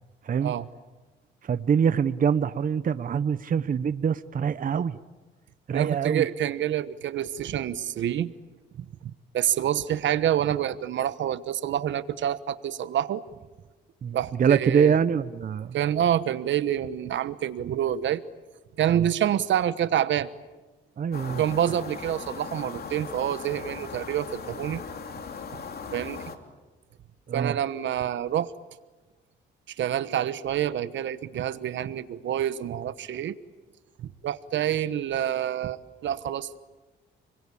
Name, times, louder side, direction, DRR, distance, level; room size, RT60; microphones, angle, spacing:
voice 1, 1.4-5.0 5.7-6.3 14.0-15.8 18.9-19.0 21.0-21.4 27.3-27.6, right 7 dB, 45° right, 13 dB, 0.9 m, -24 dB
voice 2, 5.7-8.3 8.8-13.2 14.1-15.0 15.7-18.2 18.8-20.3 21.3-24.8 25.9-26.2 27.3-28.5 29.7-33.4 34.0-36.6, right 10 dB, 70° right, 14 dB, 1.2 m, -27 dB
sound 1, 21.1-26.4, left 5 dB, 50° left, 3.0 m, -38 dB
30.0 x 21.5 x 8.6 m, 1.2 s
cardioid pair, 90°, 20 cm